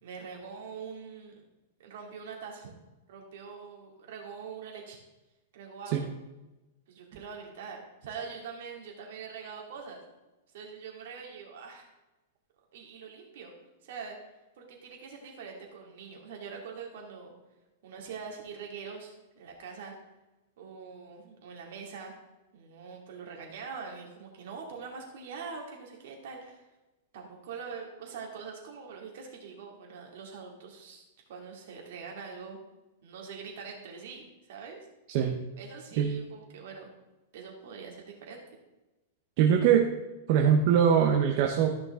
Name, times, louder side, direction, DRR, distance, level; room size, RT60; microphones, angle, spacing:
voice 1, 0.0-1.4 1.8-2.7 3.1-5.0 5.5-6.1 6.9-10.0 10.5-11.9 12.7-13.5 13.8-14.3 14.6-17.3 17.8-19.9 20.6-22.1 22.5-26.7 27.1-31.0 31.3-32.6 33.0-34.8 35.6-36.9 37.3-38.4, right 5 dB, 55° right, 0 dB, 2.5 m, -43 dB
voice 2, 39.4-39.9 40.3-41.7, right 8 dB, 40° right, 2 dB, 0.8 m, -22 dB
13.5 x 6.0 x 3.7 m, 1.1 s
supercardioid pair, 170°, 0 cm